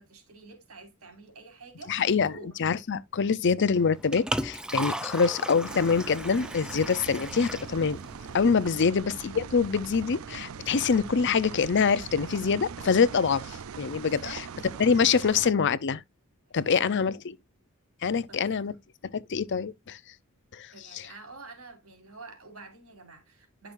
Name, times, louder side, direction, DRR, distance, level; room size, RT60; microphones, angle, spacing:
voice 1, 0.0-2.6 14.0-14.4 16.5-17.0 18.3-18.8 20.7-23.7, right 3 dB, 90° right, 3.6 m, -48 dB
voice 2, 1.9-8.0 8.3-14.4 14.8-16.0 16.5-17.2 18.0-18.7 19.1-20.0 20.5-21.1, left 5 dB, 55° left, 0.6 m, -25 dB
Liquid, 3.8-8.8, right 1 dB, 5° right, 0.6 m, -36 dB
sound 1, 5.6-15.5, right 6 dB, 75° right, 0.5 m, -41 dB
10.5 x 6.0 x 2.6 m
head